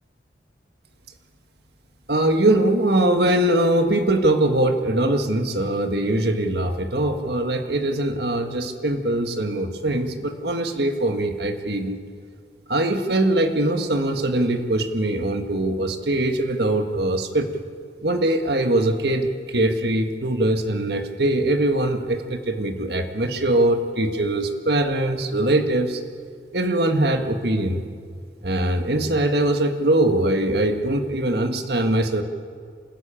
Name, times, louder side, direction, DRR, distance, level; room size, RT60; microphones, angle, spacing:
voice 1, 2.1-12.0 12.7-17.5 18.0-26.0 26.5-27.8 28.4-32.2, right 1 dB, 60° right, 6 dB, 1.7 m, -22 dB
28.0 x 14.0 x 9.0 m, 2.1 s
head